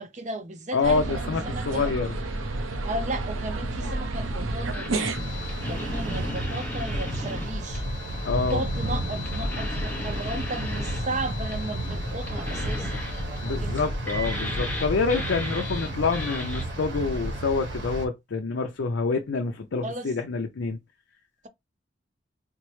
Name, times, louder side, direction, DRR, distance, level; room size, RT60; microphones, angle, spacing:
voice 1, 0.0-1.9 2.8-5.3 5.7-7.9 8.5-13.8 14.1-14.2 19.8-20.1, right 2 dB, 35° right, 0.5 m, -35 dB
voice 2, 0.7-2.2 8.2-8.6 13.4-20.8, left 4 dB, 70° left, 0.5 m, -27 dB
sound 1, 0.8-6.3, right 2 dB, 90° right, 0.7 m, -31 dB
sound 2, 4.7-16.6, left 2 dB, 10° left, 0.7 m, -37 dB
sound 3, 5.1-18.1, right 1 dB, 65° right, 1.0 m, -31 dB
4.3 x 2.0 x 3.1 m
head